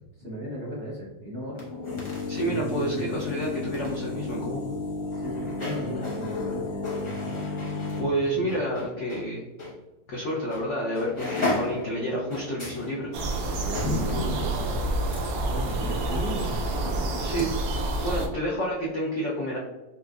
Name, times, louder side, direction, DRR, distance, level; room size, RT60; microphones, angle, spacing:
voice 1, 0.2-1.7 2.4-3.3 5.1-7.4 8.3-8.5 13.5-14.8 15.5-17.4, equal, 50° right, -6 dB, 0.7 m, -36 dB
sound 1, 1.5-9.3 9.6-9.7 10.5-10.7 10.9-17.5 17.7-17.8, left 3 dB, 30° left, 0.6 m, -33 dB
voice 2, 2.3-4.7 7.3-7.6 8.0-9.4 10.1-13.1 15.7-15.8 17.2-17.5 18.0-19.6, right 1 dB, 70° left, -4 dB, 0.7 m, -29 dB
sound 2, 13.1-18.3, right 2 dB, 80° right, 1.3 m, -28 dB
4.1 x 2.4 x 2.3 m, 1.1 s
omnidirectional pair, 2.0 m